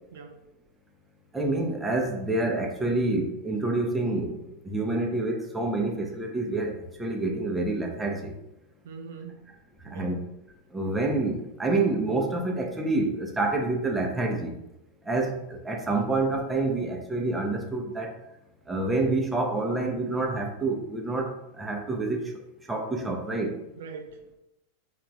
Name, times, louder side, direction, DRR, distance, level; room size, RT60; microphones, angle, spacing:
voice 1, 0.1-0.4 8.8-9.5 9.9-10.2 23.8-24.3, right 5 dB, 60° right, 3 dB, 0.3 m, -42 dB
voice 2, 1.3-8.3 9.8-10.2 10.7-14.6 15.0-18.2 18.7-22.4 22.7-23.6, right 2 dB, 10° right, 1 dB, 0.6 m, -28 dB
3.4 x 2.4 x 3.1 m, 0.91 s
figure-of-eight pair, 90°, 0 cm